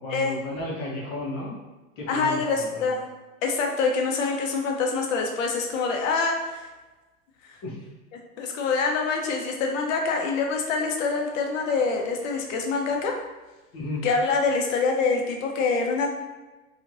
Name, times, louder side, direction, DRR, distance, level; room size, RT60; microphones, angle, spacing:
voice 1, 0.0-1.6 2.0-3.0 7.6-7.8 13.7-14.0, left 1 dB, 30° left, -4 dB, 0.8 m, -33 dB
voice 2, 2.1-3.1 3.4-6.7 7.4-7.6 8.1-13.2 14.0-16.1, left 4 dB, 60° left, 2 dB, 0.7 m, -25 dB
3.2 x 2.4 x 2.6 m, 1.2 s
hypercardioid pair, 120°, 44 cm